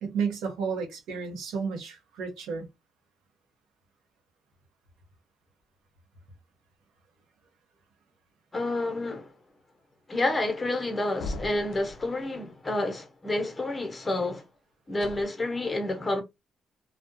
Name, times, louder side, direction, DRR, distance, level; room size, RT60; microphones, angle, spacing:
voice 1, 0.0-2.7, right 5 dB, 85° right, 0.8 m, -32 dB
voice 2, 8.5-9.3 10.1-14.4 14.9-16.2, left 2 dB, 25° left, 0.8 m, -29 dB
sound 1, 11.2-12.1 14.9-15.3, left 2 dB, 75° left, 0.4 m, -37 dB
2.3 x 2.2 x 2.5 m
cardioid pair, 90°, 0 cm